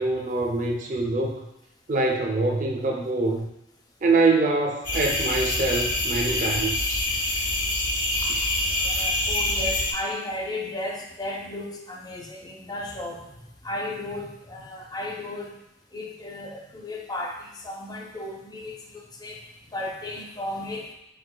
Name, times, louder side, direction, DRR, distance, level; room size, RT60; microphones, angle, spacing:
voice 1, 0.0-1.5 1.9-3.5 4.0-7.0, right 3 dB, 45° right, 1 dB, 0.6 m, -24 dB
sound 1, 4.8-9.9, left 1 dB, 50° left, 1.1 m, -26 dB
voice 2, 8.8-13.3 13.6-15.5 15.9-19.4 19.7-20.9, left 1 dB, 20° left, 1 dB, 0.5 m, -34 dB
4.9 x 4.0 x 2.2 m, 0.88 s
head